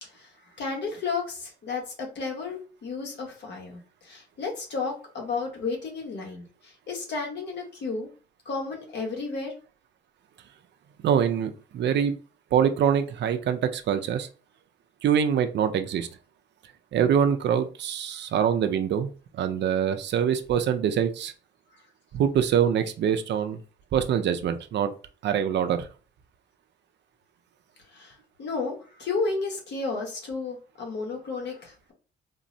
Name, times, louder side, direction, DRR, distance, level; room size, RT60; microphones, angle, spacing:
voice 1, 0.0-8.1 8.4-9.5 18.1-18.3 21.7-21.8 27.9-31.9, left 4 dB, 60° left, 0 dB, 1.2 m, -33 dB
voice 2, 11.0-12.2 12.5-14.3 15.0-16.1 16.9-21.3 22.1-23.6 23.9-24.9 25.2-25.9, right 8 dB, 60° right, 8 dB, 0.5 m, -24 dB
3.6 x 2.0 x 2.6 m, 0.36 s
cardioid pair, 90°, 20 cm